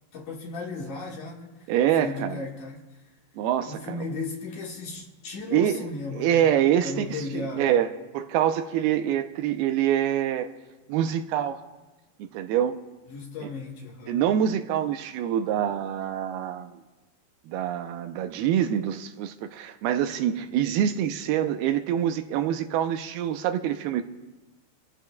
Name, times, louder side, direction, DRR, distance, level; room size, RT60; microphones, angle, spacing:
voice 1, 0.1-1.7 2.0-2.8 3.7-6.5 6.8-7.7 13.1-14.3, left 3 dB, 60° left, 2.8 m, -36 dB
voice 2, 1.7-2.4 3.4-4.0 5.5-5.8 6.1-7.9 8.1-10.5 10.9-11.6 12.2-12.8 13.4-13.5 14.1-16.7 17.5-24.0, right 10 dB, 85° right, 2.6 m, -25 dB
27.0 x 15.0 x 2.3 m
omnidirectional pair, 4.5 m